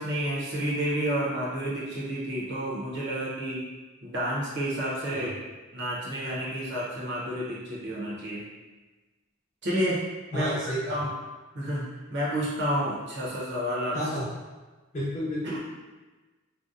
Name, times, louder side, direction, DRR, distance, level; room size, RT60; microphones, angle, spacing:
voice 1, 0.0-3.7 4.0-5.3 5.7-8.4 9.6-10.5 10.9-11.1 11.5-14.0 15.4-15.6, equal, 55° right, -6 dB, 0.7 m, -30 dB
voice 2, 10.3-11.0 13.9-14.3 14.9-15.6, equal, 35° left, -8 dB, 0.8 m, -31 dB
2.7 x 2.1 x 2.4 m, 1.2 s
head